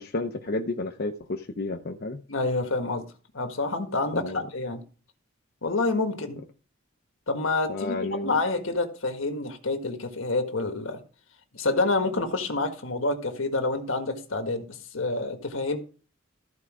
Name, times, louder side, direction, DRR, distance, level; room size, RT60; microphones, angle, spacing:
voice 1, 0.0-2.2 4.1-4.5 7.7-8.4, left 2 dB, 55° left, 0.8 m, -31 dB
voice 2, 2.3-3.0 3.3-4.8 5.6-6.4 7.3-11.0 11.5-14.6 14.9-15.8, left 3 dB, 80° left, 1.6 m, -28 dB
14.0 x 4.8 x 4.8 m
head